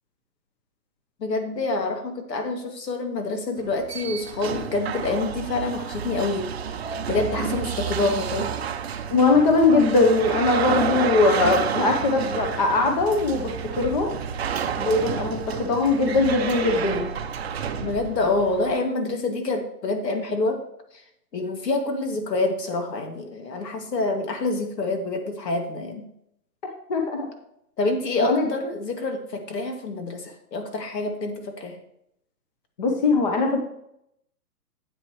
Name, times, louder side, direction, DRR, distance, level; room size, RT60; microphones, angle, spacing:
voice 1, 1.2-6.5 7.1-8.5 17.8-20.6 20.9-21.0 21.3-26.0 27.8-31.8, left 2 dB, 80° left, 4 dB, 2.4 m, -27 dB
sound 1, 3.6-18.7, right 7 dB, 40° right, 0.7 m, -30 dB
voice 2, 9.1-13.5 13.8-14.1 14.8-17.1 26.9-27.3 28.2-28.5 32.8-33.6, left 3 dB, 25° left, 3 dB, 1.0 m, -20 dB
12.5 x 8.6 x 3.2 m, 0.75 s
hypercardioid pair, 170°, 49 cm